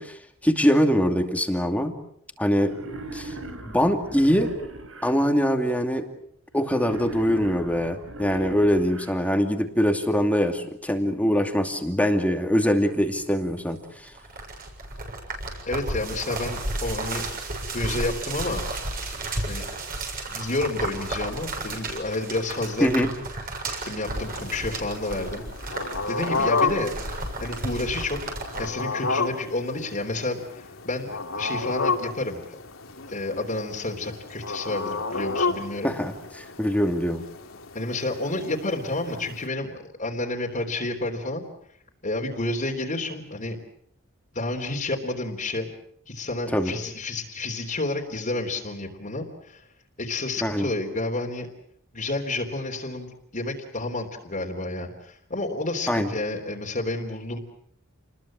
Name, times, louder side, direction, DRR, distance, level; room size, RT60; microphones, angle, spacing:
voice 1, 0.0-1.9 2.4-2.7 3.1-3.3 3.6-4.5 5.0-6.1 6.5-14.1 22.8-23.1 35.8-37.2 46.5-46.7 50.4-50.7 55.9-56.1, equal, 5° left, 5 dB, 2.6 m, -23 dB
Wild animals, 2.6-5.1 6.6-9.1, right 2 dB, 75° right, 5.3 m, -38 dB
sound 1, 12.9-28.7, right 2 dB, 45° right, 7.2 m, -33 dB
voice 2, 15.7-17.2 17.7-18.7 19.5-19.7 20.3-23.1 23.8-25.5 26.1-28.2 28.6-32.6 33.1-35.9 37.7-41.5 42.0-43.6 44.3-45.7 46.1-49.6 50.0-51.5 51.9-57.4, left 2 dB, 40° left, 0 dB, 3.5 m, -30 dB
sound 2, 24.0-39.5, left 4 dB, 80° left, 3.1 m, -32 dB
29.5 x 21.5 x 7.5 m, 0.69 s
head